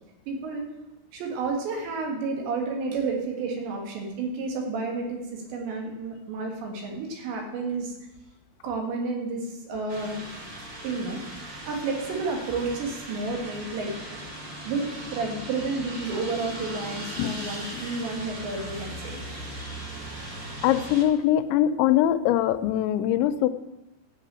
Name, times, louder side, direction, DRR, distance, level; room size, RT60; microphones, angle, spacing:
voice 1, 0.3-0.7 1.1-7.9 8.6-10.2 10.8-11.2 11.6-14.2 14.7-19.2, right 3 dB, 70° right, 1 dB, 4.0 m, -31 dB
sound 1, 9.9-21.0, right 1 dB, 90° right, 1.0 m, -38 dB
voice 2, 20.6-23.5, left 12 dB, 85° left, 10 dB, 2.9 m, -22 dB
13.0 x 5.9 x 8.7 m, 0.99 s
omnidirectional pair, 5.3 m